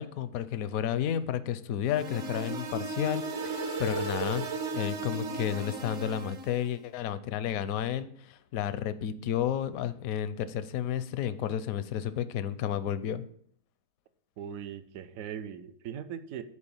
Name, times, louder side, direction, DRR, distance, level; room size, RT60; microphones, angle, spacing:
voice 1, 0.0-4.4 4.7-13.2, left 10 dB, 80° left, 13 dB, 1.0 m, -32 dB
sound 1, 1.9-6.7, right 3 dB, 55° right, 1.2 m, -35 dB
voice 2, 14.4-16.4, right 9 dB, 75° right, 11 dB, 1.1 m, -39 dB
9.8 x 4.6 x 7.1 m, 0.65 s
omnidirectional pair, 1.5 m